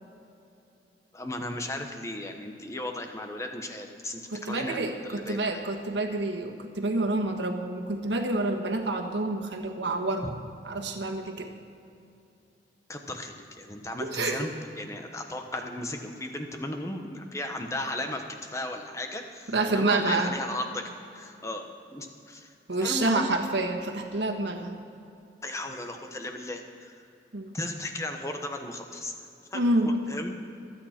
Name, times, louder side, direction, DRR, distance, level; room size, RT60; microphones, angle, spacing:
voice 1, 1.1-5.7 12.9-14.5 14.8-21.7 21.9-22.5 22.8-23.3 25.4-26.9 27.5-29.1 29.5-29.6 30.1-30.4, left 1 dB, 15° left, 5 dB, 1.0 m, -35 dB
voice 2, 4.3-10.4 10.6-11.5 14.0-14.4 19.5-20.3 22.7-24.8 27.3-27.6 29.5-29.9, right 2 dB, 85° right, 3 dB, 1.4 m, -28 dB
25.5 x 9.0 x 4.4 m, 2.7 s
head